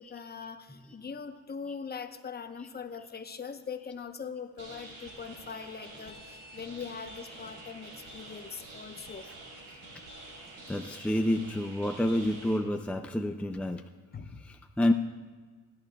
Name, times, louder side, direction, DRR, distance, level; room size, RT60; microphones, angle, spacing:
voice 1, 0.0-9.3 14.1-14.4, left 6 dB, 30° left, 8 dB, 0.9 m, -41 dB
sound 1, 4.6-12.6, right 2 dB, 70° right, 3.5 m, -48 dB
voice 2, 10.7-13.8 14.5-14.9, left 1 dB, 5° left, 5 dB, 0.5 m, -28 dB
19.0 x 10.5 x 2.3 m, 1.4 s
cardioid pair, 90°, 30 cm